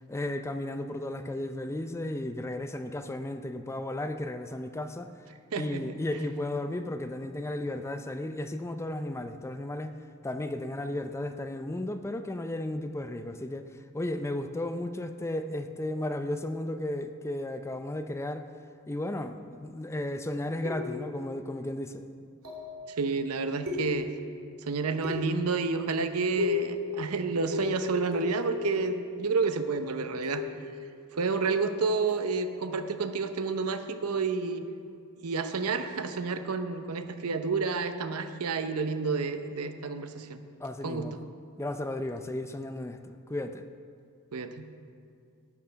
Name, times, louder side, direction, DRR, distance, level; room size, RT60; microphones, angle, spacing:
voice 1, 0.1-5.1 5.5-9.9 10.2-13.6 13.9-18.5 18.9-22.0 40.6-41.2 41.6-43.7, left 1 dB, 10° left, 8 dB, 0.4 m, -34 dB
voice 2, 5.5-5.8 23.0-24.1 24.7-30.4 31.2-34.7 35.2-40.4 40.8-41.1 44.3-44.7, right 4 dB, 90° right, 9 dB, 0.8 m, -30 dB
sound 1, 20.6-21.2 22.4-22.8 23.7-24.3 25.0-25.5 26.4-26.9 27.5-29.2 30.2-30.7 32.1-32.3, left 4 dB, 70° right, 3.1 m, -34 dB
12.0 x 8.6 x 5.7 m, 2.4 s
head